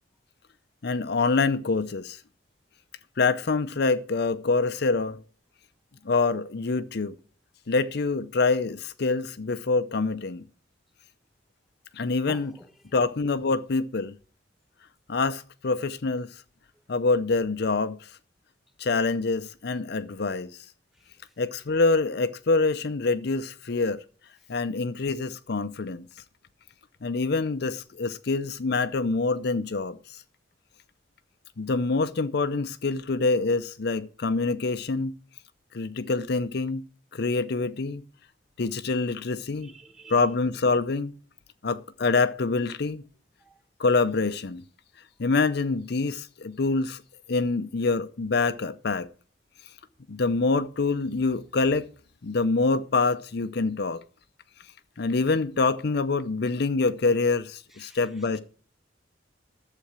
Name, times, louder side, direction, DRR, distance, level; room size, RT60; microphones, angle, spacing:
voice 1, 0.8-2.2 3.2-5.2 6.0-7.2 7.7-10.5 11.9-12.5 12.9-14.2 15.1-16.4 16.9-18.1 18.8-20.7 21.4-24.0 24.5-26.1 27.0-30.2 31.6-35.1 35.7-36.8 37.1-38.0 38.6-39.7 40.1-41.1 41.6-43.0 43.8-44.6 45.2-47.0 47.3-49.1 50.1-51.9 52.2-54.0 55.0-58.4, left 3 dB, 60° left, 0.6 m, -26 dB
voice 2, 12.3-12.7 39.6-40.2 43.4-43.6 57.7-58.0, right 1 dB, ahead, 1.5 m, -47 dB
11.5 x 7.7 x 6.2 m
head